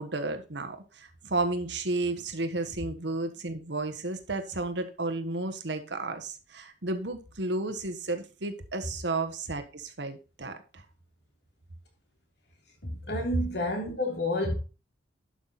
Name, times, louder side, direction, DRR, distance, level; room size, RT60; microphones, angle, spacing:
voice 1, 0.0-10.8, right 2 dB, 80° right, 1.4 m, -32 dB
voice 2, 12.8-14.5, left 1 dB, 65° left, 3.2 m, -30 dB
11.5 x 6.0 x 4.1 m
head